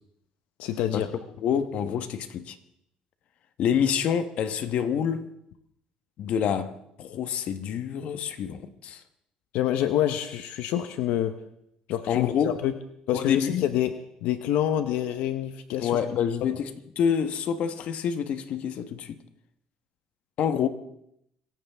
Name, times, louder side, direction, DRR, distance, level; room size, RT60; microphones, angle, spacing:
voice 1, 0.6-1.1 9.5-11.3 11.9-12.7 13.1-13.9 14.2-16.0, left 11 dB, 85° left, 1.0 m, -27 dB
voice 2, 1.4-2.6 3.6-5.3 6.2-9.0 12.1-12.6 13.1-13.7 15.8-19.2 20.4-20.7, left 8 dB, 60° left, 1.3 m, -27 dB
26.0 x 15.0 x 3.6 m
cardioid pair, 125°, 2 cm